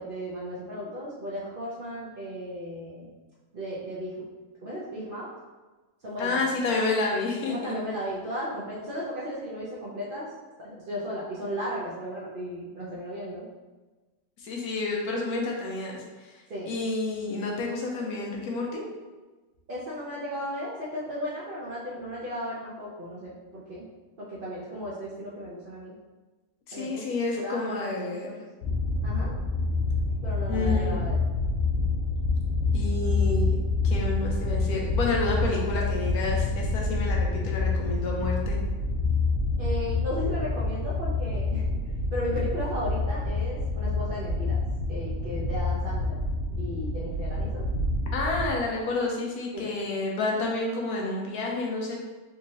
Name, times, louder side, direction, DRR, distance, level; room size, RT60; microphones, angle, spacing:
voice 1, 0.0-3.1 3.5-4.2 4.6-5.3 6.0-6.4 7.5-10.3 10.6-13.5 16.5-16.8 19.7-23.9 24.2-25.9 26.7-27.0 27.3-28.4 29.0-29.3 30.2-31.2 39.6-44.6 44.9-46.2 46.6-47.7 49.5-49.7, equal, 50° right, -7 dB, 0.6 m, -35 dB
voice 2, 6.2-7.8 14.4-16.4 16.7-18.8 26.7-28.3 30.5-31.0 32.7-33.6 33.8-38.6 48.1-52.0, left 2 dB, 90° left, -1 dB, 1.2 m, -30 dB
sound 1, 28.6-48.6, left 3 dB, 65° left, 0.9 m, -27 dB
3.5 x 3.0 x 2.7 m, 1.2 s
omnidirectional pair, 1.6 m